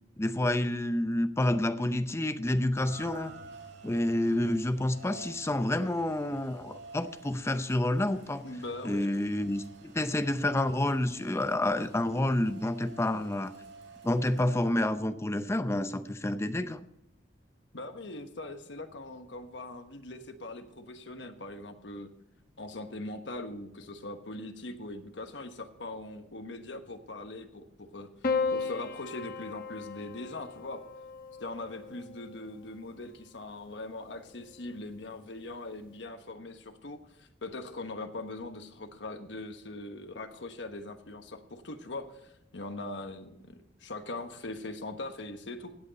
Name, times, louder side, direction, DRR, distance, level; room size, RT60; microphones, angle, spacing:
voice 1, 0.2-3.3 3.8-8.4 8.8-13.5 14.0-16.8, left 1 dB, 15° left, 11 dB, 0.6 m, -29 dB
Rain, 2.7-14.7, right 3 dB, 75° right, 2.0 m, -50 dB
voice 2, 8.4-9.1 17.7-22.1 22.6-28.1 28.5-30.8 31.4-45.7, left 2 dB, 75° left, 7 dB, 1.3 m, -41 dB
Piano, 28.2-32.7 33.9-34.6, left 4 dB, 50° left, 1.2 m, -35 dB
16.5 x 8.0 x 4.1 m, 0.81 s
head